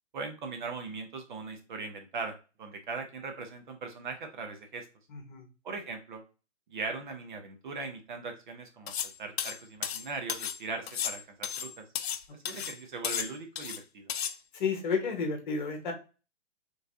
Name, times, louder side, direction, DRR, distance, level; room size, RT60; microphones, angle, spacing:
voice 1, 0.1-4.9 5.6-6.2 6.7-11.9 12.4-14.1, right 4 dB, 45° right, 5 dB, 0.8 m, -39 dB
voice 2, 5.1-5.5 12.5-12.6 14.5-15.9, left 5 dB, 45° left, 3 dB, 1.2 m, -31 dB
sound 1, 8.9-9.1 9.4-10.6 10.9-12.2 12.5-12.8 13.0-13.8 14.1-14.3, left 9 dB, 65° left, 0.6 m, -34 dB
4.4 x 3.2 x 2.6 m, 0.32 s
hypercardioid pair, 160°, 35 cm